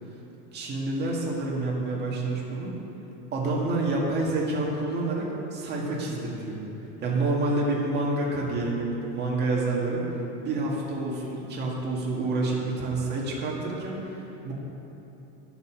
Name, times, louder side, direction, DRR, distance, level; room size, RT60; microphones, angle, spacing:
voice 1, 0.5-2.7 3.3-6.6 7.0-10.0 10.4-14.5, right 2 dB, 30° right, -3 dB, 1.9 m, -28 dB
9.8 x 8.2 x 6.2 m, 3.0 s
supercardioid pair, 150°, 35 cm